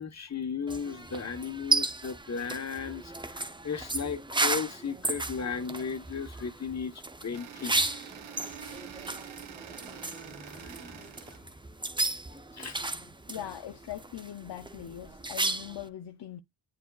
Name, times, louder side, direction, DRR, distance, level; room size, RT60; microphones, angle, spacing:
voice 1, 0.0-7.8 10.1-11.2 12.5-13.1, left 6 dB, 35° left, 1.2 m, -36 dB
sound 1, 0.7-15.9, right 2 dB, 10° right, 0.6 m, -34 dB
sound 2, 7.3-11.4, right 8 dB, 85° right, 1.1 m, -46 dB
voice 2, 13.3-16.4, left 11 dB, 60° left, 0.7 m, -41 dB
9.8 x 4.5 x 2.4 m
wide cardioid pair, 105°, 46 cm